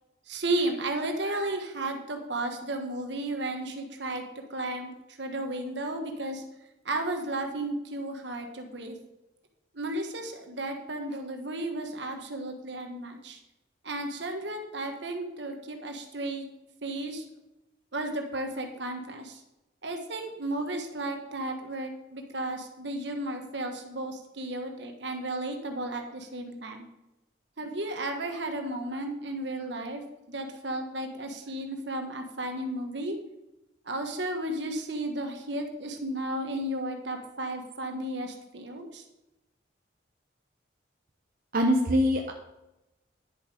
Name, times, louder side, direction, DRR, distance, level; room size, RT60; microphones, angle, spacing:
voice 1, 0.3-4.2 4.5-4.9 5.2-6.4 6.8-8.9 9.7-13.4 13.8-16.4 16.8-17.2 17.9-19.4 19.8-26.8 27.6-30.0 30.3-33.1 33.9-39.0, right 1 dB, 70° right, 4 dB, 1.5 m, -33 dB
voice 2, 41.5-42.3, equal, 50° right, 1 dB, 0.9 m, -23 dB
10.5 x 7.1 x 5.1 m, 0.94 s
head